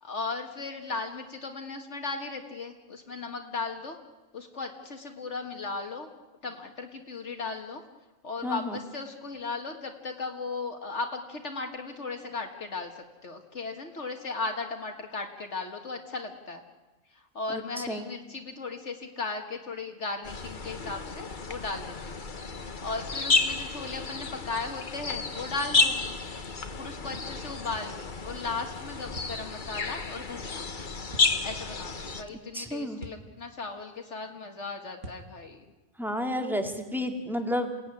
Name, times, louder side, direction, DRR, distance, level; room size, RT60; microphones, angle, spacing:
voice 1, 0.0-4.0 4.3-6.1 6.4-7.8 8.2-12.9 13.2-16.6 17.1-22.2 22.8-26.0 26.8-30.7 31.4-35.7, left 3 dB, 60° left, 4 dB, 2.0 m, -36 dB
voice 2, 8.4-8.8 17.5-17.6 17.9-18.1 32.5-33.0 36.0-37.9, equal, ahead, 5 dB, 2.2 m, -31 dB
sound 1, 20.2-32.2, left 4 dB, 40° left, 1.4 m, -31 dB
sound 2, 27.1-27.4 29.2-29.4 31.1-31.3 33.0-33.3 35.0-35.3, right 2 dB, 70° right, 2.1 m, -43 dB
28.0 x 18.0 x 9.7 m, 1.2 s
omnidirectional pair, 1.3 m